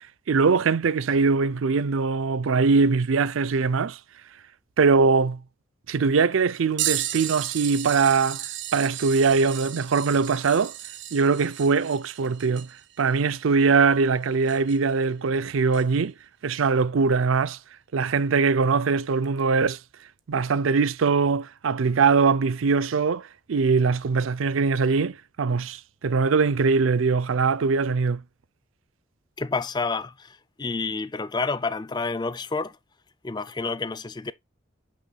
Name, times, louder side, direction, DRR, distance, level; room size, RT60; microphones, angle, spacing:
voice 1, 0.0-4.0 4.8-5.4 5.9-10.7 11.1-12.7 13.0-16.1 16.4-17.6 17.9-19.8 20.3-28.2, right 4 dB, 85° right, 0.5 m, -22 dB
sound 1, 6.8-15.0 15.7-15.8 18.1-18.2 19.2-19.4 20.5-20.6, right 12 dB, 65° right, 1.0 m, -34 dB
voice 2, 29.4-32.8 33.2-34.3, left 4 dB, 20° left, 0.4 m, -29 dB
8.3 x 6.2 x 2.3 m
head